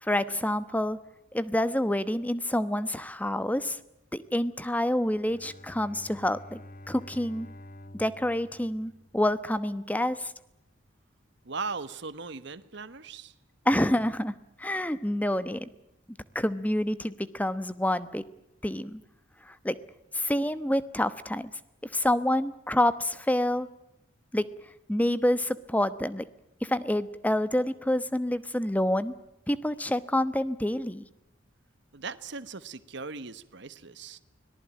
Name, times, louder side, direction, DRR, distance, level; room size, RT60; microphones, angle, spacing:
voice 1, 0.0-1.0 1.3-3.8 4.1-6.6 6.9-7.5 7.9-10.3 13.6-15.7 16.3-18.2 18.6-19.0 19.4-19.8 20.1-21.5 21.9-23.7 24.3-24.5 24.9-26.2 26.6-29.1 29.5-31.0, left 1 dB, 10° left, 14 dB, 1.0 m, -27 dB
Bowed string instrument, 5.2-9.6, left 1 dB, 45° left, 1.3 m, -49 dB
voice 2, 11.4-13.3 31.9-34.2, right 4 dB, 60° right, 13 dB, 1.2 m, -38 dB
25.0 x 18.5 x 8.9 m, 0.85 s
head